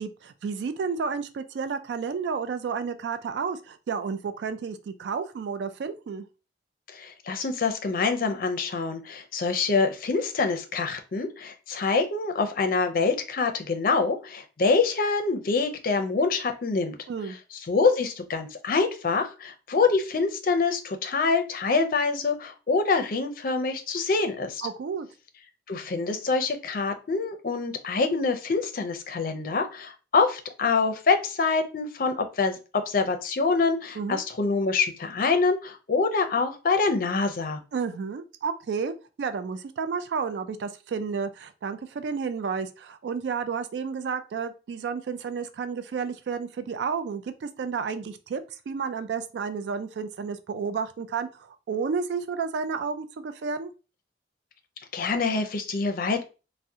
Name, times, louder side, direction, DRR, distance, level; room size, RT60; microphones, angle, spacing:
voice 1, 0.0-6.2 17.1-17.4 24.6-25.1 34.0-34.2 37.7-38.9 39.2-53.7, right 5 dB, 75° right, 10 dB, 0.3 m, -31 dB
voice 2, 6.9-17.0 17.7-24.6 25.7-37.6 54.9-56.2, left 4 dB, 50° left, 6 dB, 0.5 m, -25 dB
3.5 x 2.1 x 2.7 m, 0.32 s
head